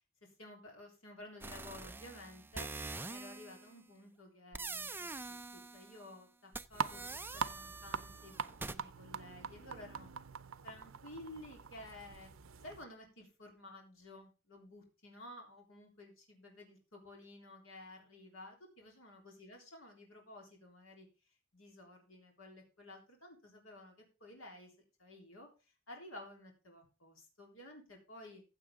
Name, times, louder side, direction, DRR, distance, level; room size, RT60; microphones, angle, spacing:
voice 1, 0.2-7.0 7.3-10.1 10.6-12.3 12.6-21.1 21.5-24.7 25.0-25.5 25.9-28.4, left 1 dB, 80° left, 1 dB, 3.7 m, -53 dB
sound 1, 1.4-3.7 4.5-6.1 6.5-8.8, right 3 dB, 10° right, 0.5 m, -45 dB
sound 2, 6.7-12.8, right 6 dB, 85° right, 0.6 m, -43 dB
15.5 x 7.6 x 3.7 m, 0.31 s
head